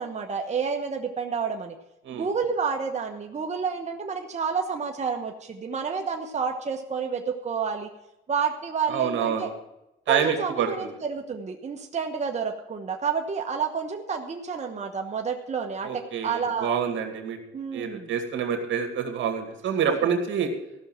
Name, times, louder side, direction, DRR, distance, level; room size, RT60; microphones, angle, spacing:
voice 1, 0.0-1.7 2.1-7.9 8.3-9.5 10.1-16.7 17.5-18.1, right 5 dB, 35° right, 3 dB, 1.1 m, -29 dB
voice 2, 8.9-9.5 10.1-10.9 15.8-17.4 17.7-20.5, right 7 dB, 75° right, 4 dB, 2.3 m, -27 dB
15.0 x 6.3 x 7.5 m, 0.90 s
cardioid pair, 90°, 20 cm